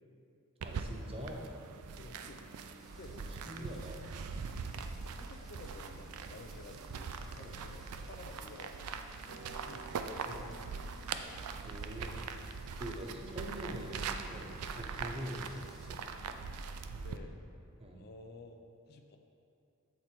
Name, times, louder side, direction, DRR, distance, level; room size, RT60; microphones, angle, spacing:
voice 1, 0.6-1.5 3.1-3.2 3.4-4.1 7.4-7.6 10.3-10.4 11.6-12.3 12.7-16.1 17.8-18.0, right 1 dB, 25° right, 0 dB, 0.7 m, -44 dB
walk sound, 0.6-17.2, right 5 dB, 85° right, 0.4 m, -42 dB
voice 2, 2.0-2.4 2.9-3.2 3.5-3.9 5.0-10.0 10.3-10.8 16.9-17.3 17.9-18.6 18.9-19.2, left 2 dB, 45° left, 5 dB, 0.5 m, -52 dB
Rain, 2.8-16.0, equal, ahead, 1.1 m, -61 dB
Harp, 9.2-15.9, right 2 dB, 60° right, 1.0 m, -56 dB
8.3 x 4.3 x 4.4 m, 2.6 s
head